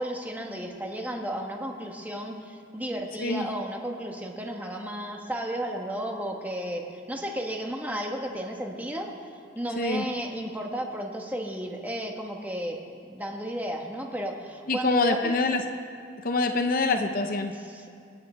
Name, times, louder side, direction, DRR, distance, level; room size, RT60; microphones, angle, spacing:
voice 1, 0.0-12.8 13.1-15.6 17.5-17.9, right 1 dB, 10° right, 1 dB, 1.2 m, -33 dB
voice 2, 14.7-15.6 16.2-17.5, left 3 dB, 45° left, 6 dB, 0.7 m, -25 dB
25.5 x 8.5 x 4.3 m, 2.4 s
head